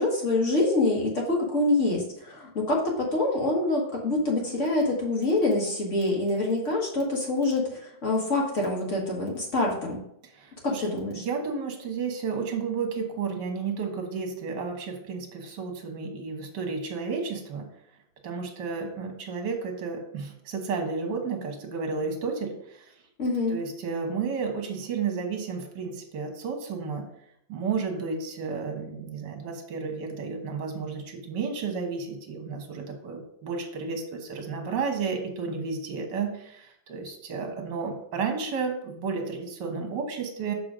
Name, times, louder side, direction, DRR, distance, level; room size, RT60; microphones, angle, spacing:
voice 1, 0.0-7.7 8.0-10.0 10.6-11.2 23.2-23.6, left 2 dB, 40° left, -1 dB, 1.6 m, -25 dB
voice 2, 10.3-10.8 11.1-17.7 18.2-22.9 23.5-27.1 27.5-40.5, right 5 dB, 65° right, 3 dB, 1.8 m, -32 dB
7.0 x 3.7 x 4.9 m, 0.73 s
omnidirectional pair, 2.1 m